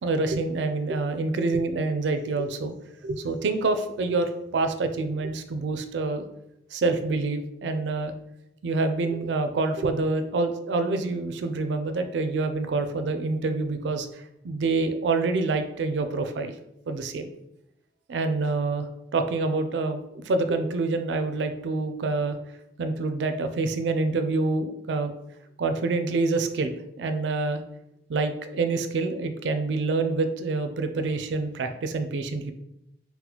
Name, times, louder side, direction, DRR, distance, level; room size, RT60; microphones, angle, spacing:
voice 1, 0.0-2.7 3.0-6.2 6.7-8.1 8.6-14.1 14.4-16.5 16.9-17.3 18.1-22.4 22.8-25.1 25.6-27.6 28.1-32.5, right 3 dB, 90° right, 8 dB, 0.4 m, -27 dB
2.8 x 2.1 x 4.0 m, 0.83 s
head